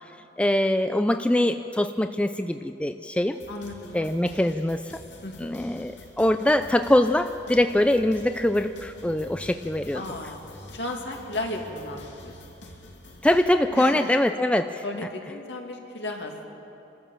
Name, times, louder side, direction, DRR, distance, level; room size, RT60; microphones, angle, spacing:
voice 1, 0.4-3.4 3.9-5.0 5.4-10.0 13.2-14.8, left 1 dB, 5° left, 8 dB, 0.4 m, -23 dB
sound 1, 3.3-13.4, left 1 dB, 85° left, 2.9 m, -46 dB
voice 2, 3.5-4.2 5.2-5.6 9.9-12.4 13.7-14.2 14.8-16.6, left 2 dB, 65° left, 1 dB, 2.4 m, -35 dB
27.0 x 13.5 x 7.3 m, 2.9 s
head